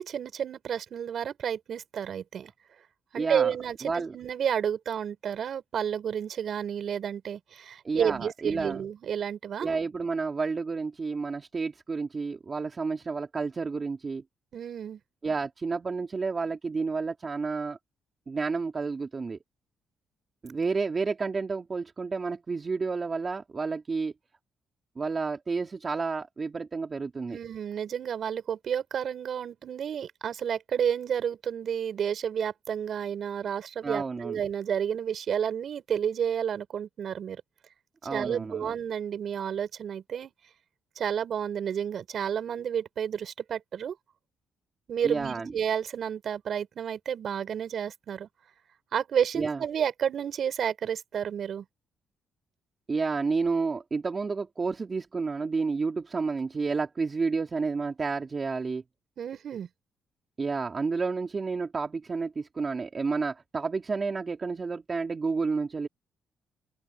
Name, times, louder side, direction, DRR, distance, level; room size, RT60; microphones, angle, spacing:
voice 1, 0.0-2.5 3.1-9.7 14.5-15.0 27.3-37.4 38.1-40.3 41.0-44.0 44.9-48.3 48.9-51.6 59.2-59.7, right 8 dB, 60° right, 5.8 m, -31 dB
voice 2, 3.2-3.5 3.8-4.1 7.8-8.8 9.6-14.2 15.2-17.8 18.3-19.4 20.4-24.1 25.0-27.4 33.8-34.4 38.0-38.7 45.0-45.5 49.4-49.6 52.9-58.8 60.4-65.9, right 4 dB, 35° right, 3.3 m, -30 dB
open air
cardioid pair, 90°, 0 cm